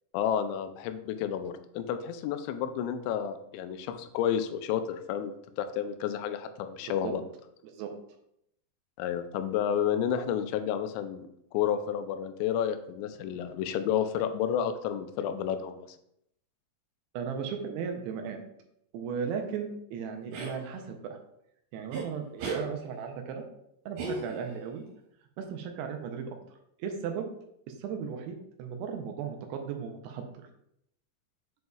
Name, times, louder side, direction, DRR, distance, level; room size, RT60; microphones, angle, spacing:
voice 1, 0.1-7.2 9.0-15.9, left 9 dB, 85° left, 9 dB, 2.8 m, -31 dB
voice 2, 17.1-18.4 18.9-21.2 21.7-23.5 23.9-24.8 25.4-26.4 26.8-27.3 27.8-30.4, right 6 dB, 80° right, 4 dB, 2.5 m, -36 dB
sound 1, 20.3-20.6 21.9-22.1 22.4-22.7 24.0-24.6, right 4 dB, 65° right, 3.3 m, -34 dB
7.8 x 5.2 x 2.3 m, 0.76 s
omnidirectional pair, 5.1 m